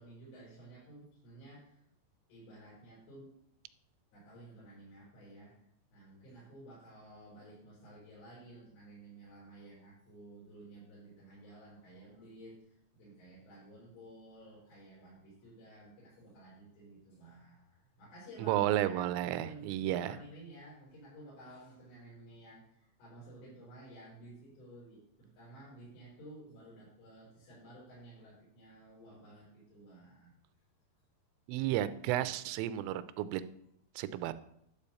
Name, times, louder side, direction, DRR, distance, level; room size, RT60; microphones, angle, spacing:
voice 1, 0.0-1.8 2.3-3.3 4.1-30.3, right 1 dB, 80° left, -8 dB, 7.3 m, -53 dB
voice 2, 18.4-20.2 31.5-33.4 34.0-34.3, right 13 dB, 85° right, 13 dB, 3.2 m, -32 dB
12.0 x 5.1 x 6.9 m, 0.72 s
omnidirectional pair, 5.7 m